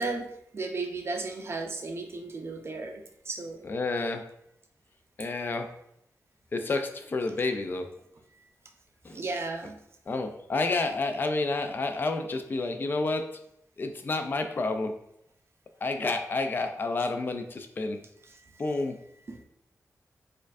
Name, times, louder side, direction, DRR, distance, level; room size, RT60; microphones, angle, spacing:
voice 1, 0.0-3.7 9.1-9.8 18.3-18.6 19.3-19.4, right 3 dB, 45° right, 4 dB, 0.5 m, -35 dB
voice 2, 3.6-4.2 5.2-5.7 6.5-7.9 9.0-9.2 10.1-13.3 13.8-14.9 15.8-18.0 18.6-19.0, left 3 dB, 35° left, 6 dB, 0.3 m, -29 dB
4.2 x 2.5 x 2.4 m, 0.76 s
wide cardioid pair, 115°, 6 cm